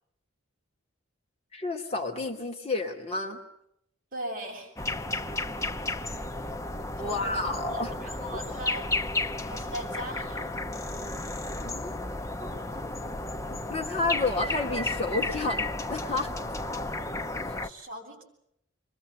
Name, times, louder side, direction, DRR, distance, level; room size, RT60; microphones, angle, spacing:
voice 1, 1.5-3.4 7.0-7.9 11.6-12.0 12.4-12.8 13.5-16.3 17.4-17.6, left 3 dB, 30° left, 3 dB, 2.6 m, -31 dB
voice 2, 4.1-4.7 7.0-8.9 9.5-10.5 17.6-18.2, right 1 dB, 40° right, 0 dB, 7.4 m, -39 dB
sound 1, 4.8-17.7, left 2 dB, 15° left, 0.9 m, -33 dB
26.5 x 22.5 x 7.9 m, 0.75 s
head